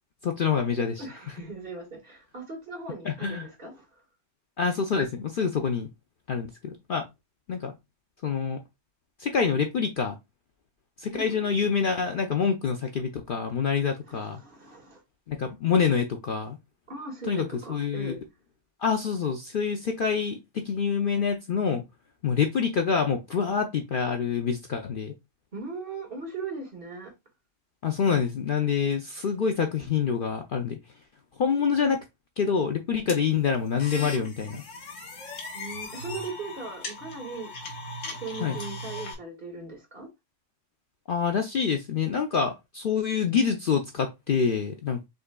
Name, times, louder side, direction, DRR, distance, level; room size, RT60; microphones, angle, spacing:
voice 1, 0.2-1.0 3.0-3.5 4.6-5.9 6.3-7.1 7.5-7.7 8.2-8.6 9.2-10.2 11.0-14.4 15.3-16.6 17.3-18.2 18.8-21.8 22.2-25.1 27.8-30.8 31.4-32.0 32.4-34.6 38.4-38.6 41.1-45.0, left 6 dB, 55° left, 0.7 m, -26 dB
voice 2, 1.0-4.0 11.1-11.5 14.1-15.0 16.9-18.2 25.5-27.1 35.5-37.5 38.1-40.1, right 3 dB, 45° right, 1.9 m, -39 dB
sound 1, 33.1-39.1, left 2 dB, 75° left, 1.4 m, -38 dB
5.4 x 3.8 x 2.2 m
omnidirectional pair, 1.3 m